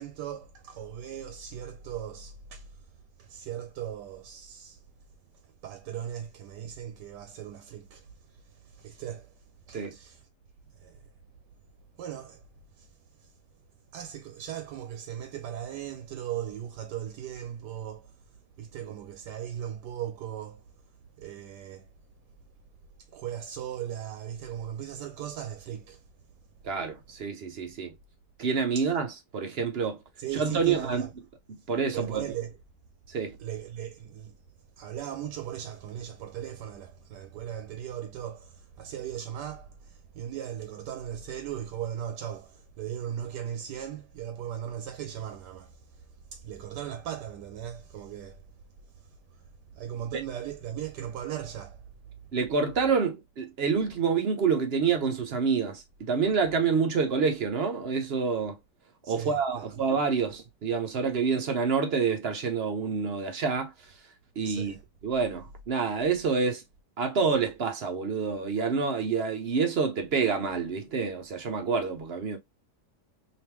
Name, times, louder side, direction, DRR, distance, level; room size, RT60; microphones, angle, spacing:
voice 1, 0.0-2.7 3.2-4.8 5.6-8.1 8.5-9.3 9.7-10.2 10.8-11.0 12.0-12.4 12.8-12.9 13.9-18.1 18.6-20.6 21.2-21.9 23.1-26.0 28.8-28.9 30.2-31.1 31.9-32.6 33.4-34.4 34.8-45.8 46.3-48.4 49.7-51.8 59.0-59.8 64.4-64.8, right 10 dB, 85° right, 1.2 m, -38 dB
voice 2, 26.6-27.9 28.4-30.0 30.3-31.0 31.5-32.3 33.1-33.4 52.3-58.6 59.1-63.9 64.4-64.8 65.0-66.6 67.0-72.4, right 5 dB, 55° right, 0.7 m, -27 dB
3.4 x 2.9 x 3.0 m
omnidirectional pair, 1.8 m